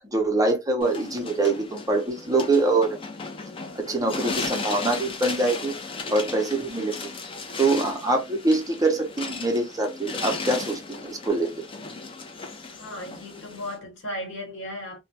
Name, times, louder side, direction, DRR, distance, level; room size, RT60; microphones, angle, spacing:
voice 1, 0.1-3.0 3.8-5.7 6.1-7.0 7.6-11.6, right 2 dB, 20° right, 0.6 m, -24 dB
sound 1, 0.8-13.8, left 3 dB, 30° left, 0.5 m, -36 dB
voice 2, 12.7-15.0, left 1 dB, 85° left, 1.2 m, -36 dB
2.2 x 2.2 x 2.6 m
head